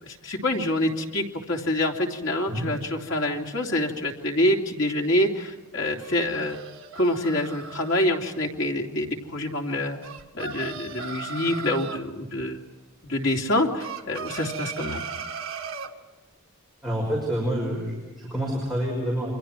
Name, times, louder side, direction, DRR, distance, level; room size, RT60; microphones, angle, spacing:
voice 1, 0.0-6.6 6.9-10.0 10.3-12.6 13.0-15.0, left 1 dB, 60° left, 0 dB, 3.2 m, -26 dB
sound 1, 6.0-8.0 10.0-12.0 13.8-15.9, right 5 dB, 65° right, 1.5 m, -36 dB
voice 2, 16.8-19.3, equal, ahead, -2 dB, 5.7 m, -28 dB
28.5 x 24.5 x 4.6 m, 1.2 s
head